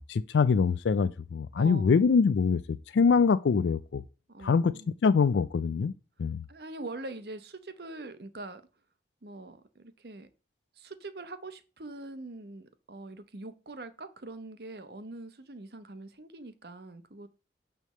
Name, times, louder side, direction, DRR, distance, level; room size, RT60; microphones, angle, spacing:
voice 1, 0.0-4.0 4.4-4.7 5.0-5.9 6.2-6.4, left 5 dB, 85° left, 0.4 m, -24 dB
voice 2, 1.6-2.1 4.3-4.9 6.5-8.6 9.2-10.3 10.7-17.3, right 2 dB, 65° right, 0.9 m, -43 dB
9.3 x 3.4 x 6.5 m
head